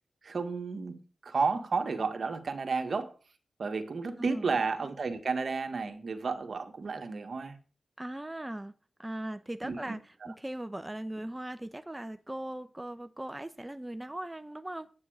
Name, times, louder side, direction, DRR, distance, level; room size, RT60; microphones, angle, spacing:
voice 1, 0.2-3.2 3.6-7.6 9.6-10.0, right 4 dB, 70° right, 1.7 m, -32 dB
voice 2, 4.2-4.6 8.0-8.7 9.0-14.9, right 1 dB, 20° right, 1.0 m, -39 dB
9.5 x 9.0 x 6.5 m
cardioid pair, 40°, 0 cm